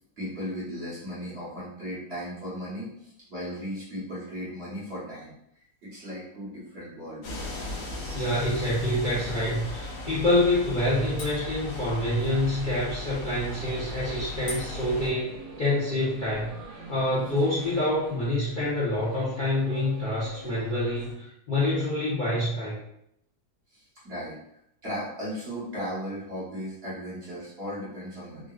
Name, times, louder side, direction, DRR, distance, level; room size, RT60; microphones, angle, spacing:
voice 1, 0.2-5.3 5.8-7.4 23.7-24.4 24.8-28.5, equal, 45° right, -8 dB, 1.2 m, -36 dB
sound 1, 7.2-15.1, left 2 dB, 65° left, 1.1 m, -37 dB
voice 2, 8.1-16.5 16.9-22.8, left 1 dB, 45° left, -9 dB, 0.7 m, -27 dB
sound 2, 11.9-21.1, right 1 dB, 80° right, 1.3 m, -46 dB
3.6 x 2.2 x 2.3 m, 0.75 s
omnidirectional pair, 1.7 m